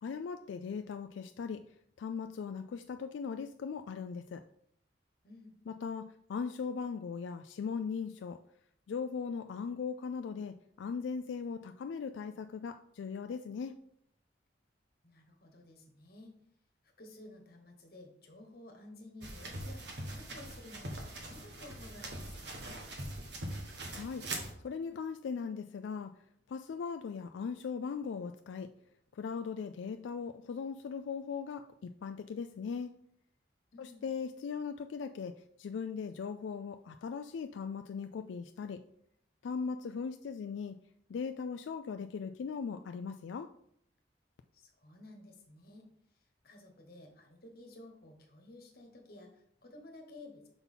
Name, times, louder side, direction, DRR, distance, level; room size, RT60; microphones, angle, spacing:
voice 1, 0.0-1.6 2.0-4.4 5.7-8.4 8.9-13.8 23.9-24.2 24.6-26.1 26.5-28.7 29.1-32.9 33.8-38.8 39.4-40.8 41.1-43.5, left 5 dB, 90° left, 8 dB, 0.3 m, -39 dB
voice 2, 5.2-5.5 15.0-16.3 16.8-22.8 33.7-34.0 44.5-45.9 46.4-50.5, left 2 dB, 55° left, 3 dB, 1.4 m, -53 dB
sound 1, 19.2-24.5, right 1 dB, 70° right, 1.3 m, -42 dB
5.8 x 4.0 x 5.5 m, 0.71 s
head